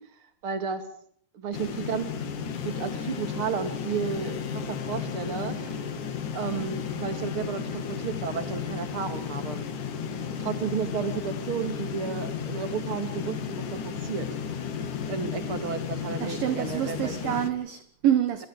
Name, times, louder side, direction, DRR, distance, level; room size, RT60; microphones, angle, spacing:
voice 1, 0.4-0.8 1.3-2.1 2.5-5.8 6.3-9.6 10.4-14.3 14.6-14.7 15.1-17.4, right 6 dB, 35° right, 3.1 m, -33 dB
sound 1, 1.5-17.5, left 6 dB, 50° left, 3.2 m, -34 dB
sound 2, 2.5-17.0, left 7 dB, 80° left, 4.4 m, -43 dB
voice 2, 16.2-18.5, right 10 dB, 65° right, 2.6 m, -27 dB
28.5 x 23.5 x 5.1 m
omnidirectional pair, 5.2 m